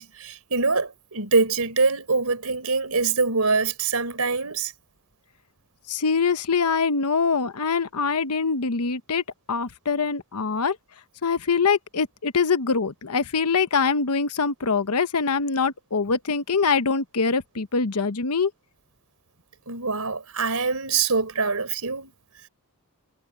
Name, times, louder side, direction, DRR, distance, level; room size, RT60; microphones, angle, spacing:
voice 1, 0.0-4.7 19.7-22.1, right 4 dB, 80° right, 4.2 m, -24 dB
voice 2, 5.9-10.8 11.2-18.5, left 5 dB, 90° left, 1.0 m, -24 dB
head